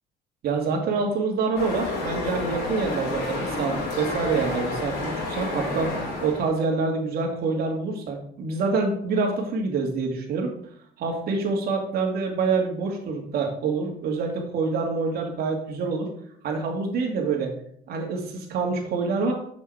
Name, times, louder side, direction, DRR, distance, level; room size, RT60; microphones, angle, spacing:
voice 1, 0.4-10.5 11.0-16.1 16.4-17.5 17.9-19.3, right 4 dB, 65° right, 1 dB, 2.3 m, -26 dB
sound 1, 1.5-6.5, left 2 dB, 90° left, 3.9 m, -30 dB
6.9 x 6.7 x 4.8 m, 0.65 s
cardioid pair, 110°, 17 cm